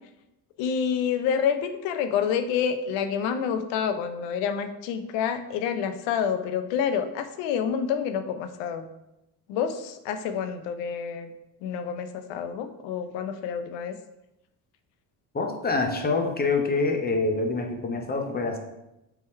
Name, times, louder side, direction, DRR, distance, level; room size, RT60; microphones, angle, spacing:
voice 1, 0.6-8.9 9.5-11.3 11.6-14.0, left 7 dB, 75° left, 9 dB, 0.6 m, -28 dB
voice 2, 15.3-18.6, left 3 dB, 20° left, 4 dB, 0.7 m, -26 dB
3.8 x 2.9 x 4.2 m, 0.90 s
supercardioid pair, 75°, 45 cm